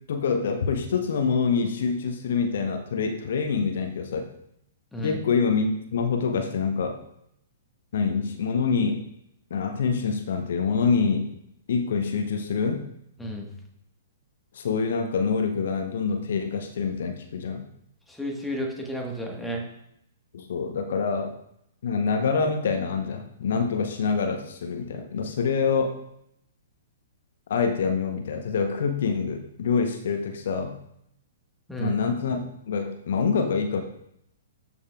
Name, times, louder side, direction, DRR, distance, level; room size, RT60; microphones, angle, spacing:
voice 1, 0.1-4.2 5.0-7.0 7.9-9.0 9.5-11.3 11.7-12.8 14.5-17.6 20.3-21.4 21.8-25.9 27.5-30.8 31.8-33.8, left 5 dB, 55° left, 6 dB, 0.8 m, -26 dB
voice 2, 18.1-19.6 31.7-32.0, equal, 5° left, 1 dB, 1.3 m, -32 dB
13.0 x 5.4 x 2.3 m, 0.75 s
figure-of-eight pair, 115°, 0 cm